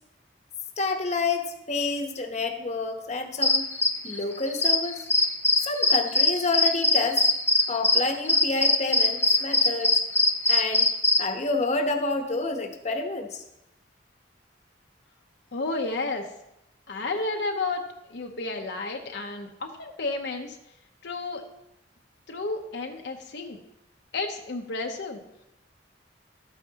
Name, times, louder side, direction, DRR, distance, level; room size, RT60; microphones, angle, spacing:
voice 1, 0.8-3.7 4.0-5.1 5.6-7.3 7.7-9.9 10.5-10.9 11.2-13.4, left 3 dB, 40° left, 4 dB, 1.0 m, -29 dB
sound 1, 3.4-11.2, left 2 dB, 15° left, 0.5 m, -22 dB
voice 2, 15.5-16.3 16.9-20.6 21.0-21.5 22.3-23.6 24.1-25.2, left 3 dB, 65° left, 2 dB, 0.8 m, -32 dB
13.0 x 9.1 x 2.9 m, 0.86 s
head